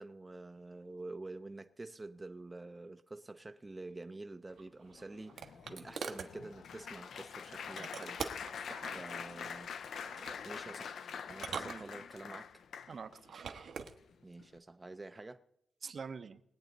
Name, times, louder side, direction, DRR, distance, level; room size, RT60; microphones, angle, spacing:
voice 1, 0.0-8.2 8.9-9.7 10.4-12.6 14.2-15.4, right 2 dB, 20° right, 0.5 m, -48 dB
sound 1, 4.6-6.3 7.8-8.6 9.9-10.4 11.3-12.3 13.2-13.9, right 6 dB, 75° right, 1.1 m, -43 dB
Applause, 4.9-13.2 13.9-14.1 14.4-14.6, left 7 dB, 70° left, 0.5 m, -45 dB
voice 2, 8.7-9.0 11.4-11.9 12.9-13.7 15.8-16.4, right 5 dB, 50° right, 0.7 m, -47 dB
21.0 x 8.8 x 4.0 m
wide cardioid pair, 130°, 0 cm